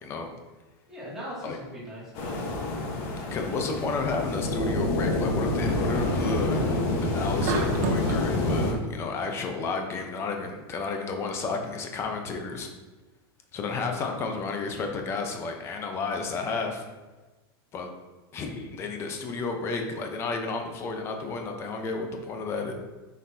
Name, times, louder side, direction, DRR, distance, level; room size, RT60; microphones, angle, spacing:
voice 1, 0.0-0.3 1.4-1.6 3.3-6.6 7.0-12.7 13.5-16.9 17.7-17.9 18.3-22.7, left 4 dB, 20° left, 4 dB, 0.7 m, -32 dB
voice 2, 0.9-2.4 3.2-3.5 3.8-4.4, equal, 5° right, -10 dB, 2.3 m, -41 dB
sound 1, 2.2-8.7, left 2 dB, 40° left, 1.3 m, -27 dB
sound 2, 4.1-10.3, equal, 60° left, 1.2 m, -47 dB
sound 3, 7.4-8.3, right 5 dB, 45° right, 0.7 m, -29 dB
8.0 x 6.0 x 2.8 m, 1.2 s
supercardioid pair, 175°, 13 cm